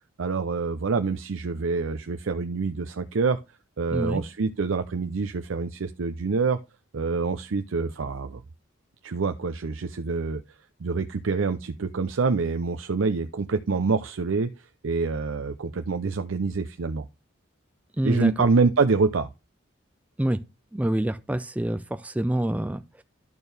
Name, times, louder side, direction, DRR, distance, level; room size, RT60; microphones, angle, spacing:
voice 1, 0.2-3.4 3.8-6.6 6.9-8.4 9.0-10.4 10.8-17.1 18.0-19.3, right 4 dB, 80° right, 0.5 m, -26 dB
voice 2, 3.9-4.2 18.0-18.3 20.2-20.4 20.7-23.0, right 1 dB, 5° right, 0.4 m, -26 dB
12.0 x 4.5 x 3.3 m
head